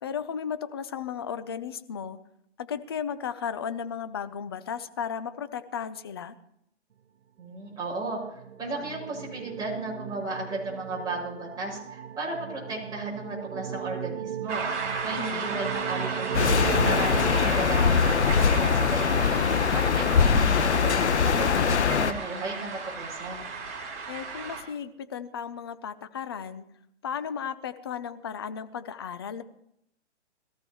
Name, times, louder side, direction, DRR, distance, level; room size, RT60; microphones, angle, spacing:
voice 1, 0.0-2.2 2.6-6.3 15.2-15.5 24.1-26.7 27.0-29.4, left 7 dB, 20° left, 12 dB, 0.4 m, -35 dB
voice 2, 7.4-14.6 15.0-21.0 21.2-23.4, right 2 dB, 10° right, -5 dB, 6.3 m, -35 dB
sound 1, 7.8-18.5, right 9 dB, 70° right, 1.2 m, -37 dB
sound 2, 14.5-24.6, right 4 dB, 30° right, 4.5 m, -34 dB
sound 3, 16.3-22.1, left 6 dB, 70° left, 1.1 m, -22 dB
21.5 x 14.0 x 3.1 m, 0.75 s
hypercardioid pair, 145°, 35 cm